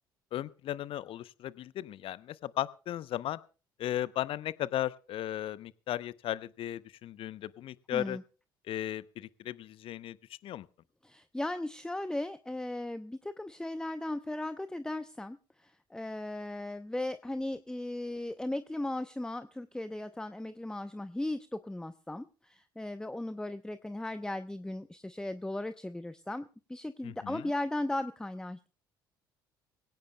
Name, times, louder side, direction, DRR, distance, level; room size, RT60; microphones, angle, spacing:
voice 1, 0.3-3.4 3.8-8.2 8.7-10.7 27.0-27.5, left 12 dB, 50° left, 18 dB, 0.7 m, -36 dB
voice 2, 7.9-8.2 11.0-28.7, left 1 dB, 5° left, 12 dB, 0.7 m, -37 dB
22.0 x 17.0 x 2.2 m, 0.35 s
figure-of-eight pair, 55°, 11 cm